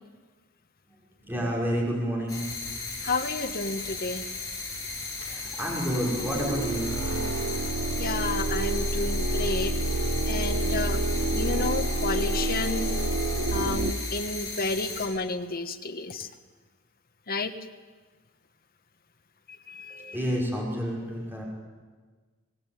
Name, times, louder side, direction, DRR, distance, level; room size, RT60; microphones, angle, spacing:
voice 1, 0.9-2.5 5.2-7.1 19.9-21.4, equal, 10° right, -3 dB, 5.5 m, -30 dB
sound 1, 2.3-15.1, left 4 dB, 15° left, 6.5 m, -36 dB
voice 2, 3.0-4.2 8.0-9.7 10.3-11.0 11.3-12.9 13.5-16.3 17.3-17.5 19.5-20.2, left 3 dB, 45° left, 8 dB, 1.4 m, -31 dB
sound 2, 5.9-13.9, right 2 dB, 55° right, 1.2 m, -28 dB
24.0 x 19.0 x 9.3 m, 1.4 s
head